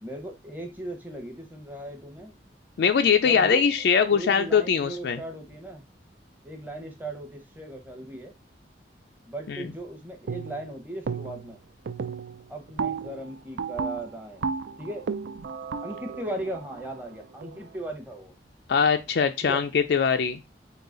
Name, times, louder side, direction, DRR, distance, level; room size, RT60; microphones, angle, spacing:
voice 1, 0.0-2.4 3.2-5.8 6.4-8.3 9.3-11.6 12.5-14.4 14.8-15.1 15.8-18.3 19.4-19.6, right 1 dB, 10° right, 3 dB, 0.8 m, -37 dB
voice 2, 2.8-5.2 9.5-9.7 18.7-20.4, left 6 dB, 70° left, 7 dB, 0.4 m, -22 dB
sound 1, 10.3-10.7 11.1-11.5 11.9-17.7, right 5 dB, 75° right, 0.4 m, -34 dB
3.9 x 2.7 x 3.8 m, 0.25 s
head